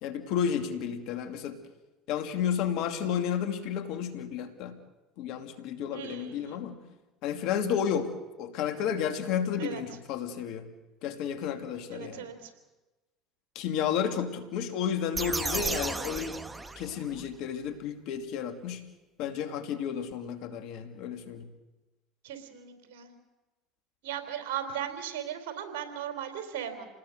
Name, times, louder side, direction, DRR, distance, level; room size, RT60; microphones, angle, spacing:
voice 1, 0.0-1.6 2.1-4.8 5.2-6.8 7.2-8.1 8.4-10.7 11.0-12.3 13.5-16.4 16.8-18.8 19.2-21.5, left 8 dB, 70° left, 7 dB, 2.6 m, -32 dB
voice 2, 5.9-6.6 9.6-9.8 11.9-12.5 22.2-23.1 24.0-26.9, right 9 dB, 80° right, 6 dB, 3.7 m, -37 dB
sound 1, 15.1-17.3, right 3 dB, 15° right, 1.2 m, -34 dB
28.0 x 20.0 x 6.6 m, 1.1 s
hypercardioid pair, 80°, 0 cm